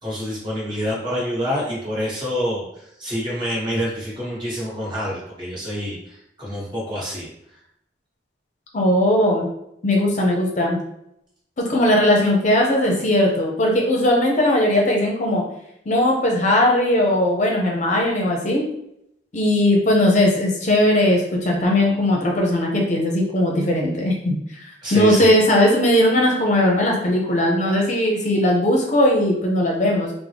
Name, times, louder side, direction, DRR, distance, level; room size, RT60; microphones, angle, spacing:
voice 1, 0.0-7.3 24.8-25.3, equal, 25° right, -6 dB, 1.3 m, -27 dB
voice 2, 8.7-9.5 9.8-10.8 11.6-15.4 15.9-18.6 19.3-30.1, left 1 dB, 45° left, 0 dB, 0.6 m, -18 dB
3.6 x 2.0 x 3.3 m, 0.77 s
head